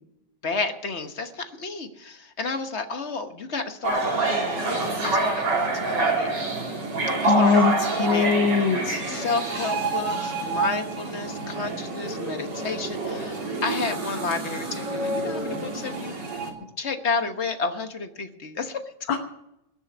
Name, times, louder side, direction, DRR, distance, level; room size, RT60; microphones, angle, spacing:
voice 1, 0.4-6.4 7.2-8.3 8.7-8.8 9.1-16.2 16.8-19.1, left 4 dB, 40° left, 7 dB, 1.3 m, -31 dB
sound 1, 3.8-16.5, right 3 dB, 65° right, 3.6 m, -27 dB
voice 2, 7.3-7.7 8.0-9.0 19.1-19.2, left 5 dB, 85° left, 2 dB, 2.0 m, -21 dB
20.0 x 7.1 x 9.4 m, 0.83 s
omnidirectional pair, 2.1 m